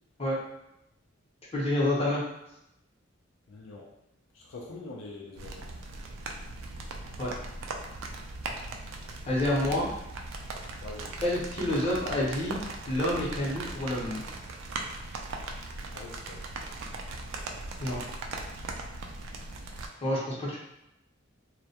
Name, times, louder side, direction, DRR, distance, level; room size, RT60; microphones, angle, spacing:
voice 1, 1.5-2.2 7.2-7.3 9.3-9.9 11.2-12.6 12.9-14.3 17.8-18.0 20.0-20.6, left 1 dB, 30° left, -6 dB, 0.7 m, -28 dB
voice 2, 3.5-3.9 4.3-5.7 10.8-11.1 15.9-16.4, left 2 dB, 75° left, -2 dB, 0.4 m, -44 dB
sound 1, 5.4-19.9, right 3 dB, 70° right, 0.3 m, -39 dB
2.2 x 2.1 x 2.7 m, 0.85 s
head